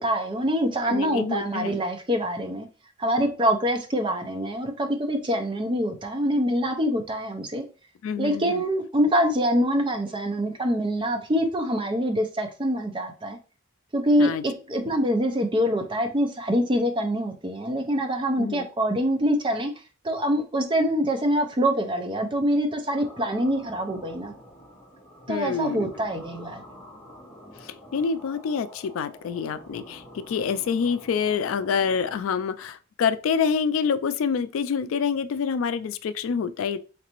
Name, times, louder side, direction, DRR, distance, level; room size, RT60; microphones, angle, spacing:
voice 1, 0.0-2.7 3.0-7.6 8.2-13.4 13.9-19.7 20.0-24.3 25.3-26.6, equal, 25° right, 0.5 m, -25 dB
voice 2, 0.9-1.8 8.0-8.6 14.2-14.4 14.8-14.9 18.4-18.7 25.3-25.9 27.6-36.8, left 6 dB, 80° left, 0.3 m, -27 dB
sound 1, 22.9-32.2, equal, 20° left, 1.1 m, -47 dB
3.9 x 3.2 x 3.0 m
head